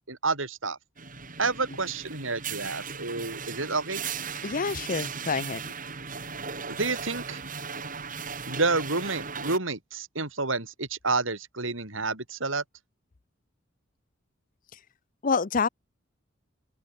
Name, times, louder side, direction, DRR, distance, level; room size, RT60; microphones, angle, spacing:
voice 1, 0.1-0.8 1.4-4.1 6.7-7.4 8.5-12.6, right 3 dB, 80° right, 4.8 m, -29 dB
sound 1, 1.0-9.6, right 6 dB, 45° right, 6.7 m, -37 dB
voice 2, 4.4-5.7 15.2-15.7, left 5 dB, 45° left, 0.6 m, -27 dB
open air
head